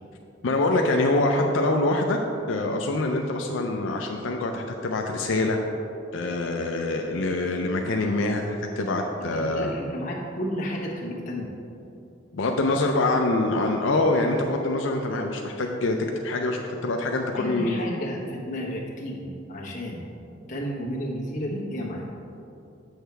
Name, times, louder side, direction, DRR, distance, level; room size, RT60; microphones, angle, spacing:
voice 1, 0.4-2.2 2.5-5.6 6.1-9.7 12.3-16.0 16.2-17.8, left 2 dB, 85° left, 2 dB, 0.5 m, -25 dB
voice 2, 9.3-11.5 17.4-20.1 20.5-22.0, equal, 40° left, -4 dB, 1.2 m, -32 dB
7.9 x 6.4 x 3.4 m, 2.7 s
head